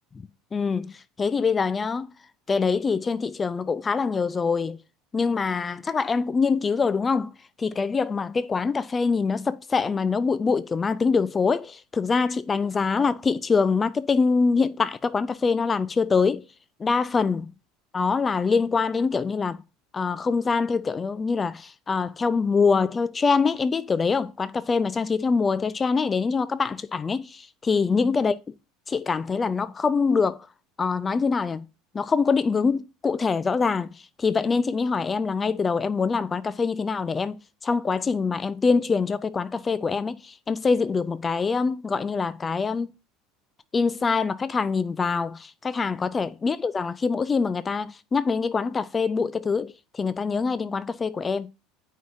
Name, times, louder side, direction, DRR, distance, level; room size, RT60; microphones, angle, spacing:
voice 1, 0.5-2.1 2.5-4.8 5.1-7.3 7.6-16.4 16.8-17.5 17.9-19.6 19.9-28.4 28.9-30.5 30.8-31.6 31.9-33.9 34.2-37.4 37.6-42.9 43.7-51.5, left 5 dB, 25° left, 0.5 m, -24 dB
9.1 x 4.7 x 2.6 m
figure-of-eight pair, 70°, 0 cm